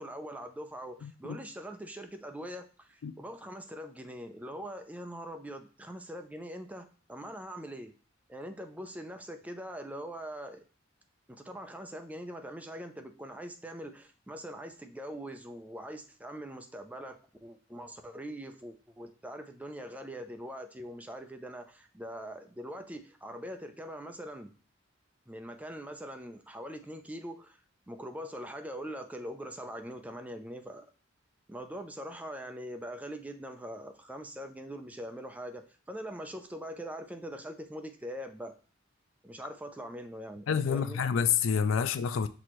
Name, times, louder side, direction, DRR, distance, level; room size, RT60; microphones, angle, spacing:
voice 1, 0.0-7.9 8.3-10.6 11.3-24.5 25.3-27.6 27.9-30.9 31.5-38.6 39.2-41.0, equal, 10° right, 0.4 m, -42 dB
voice 2, 1.0-1.4 3.0-3.1 40.5-42.3, left 7 dB, 70° left, 0.4 m, -28 dB
6.1 x 2.9 x 3.0 m
head